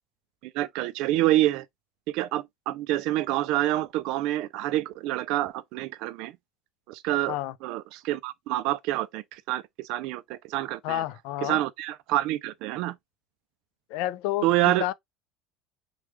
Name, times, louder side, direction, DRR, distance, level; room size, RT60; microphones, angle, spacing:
voice 1, 0.4-1.7 2.1-6.3 6.9-7.4 7.6-11.0 11.4-13.0 14.4-14.9, right 15 dB, 65° right, 0.3 m, -27 dB
voice 2, 10.8-11.6 13.9-14.9, left 15 dB, 70° left, 0.4 m, -30 dB
3.2 x 2.2 x 3.0 m
cardioid pair, 135°, 0 cm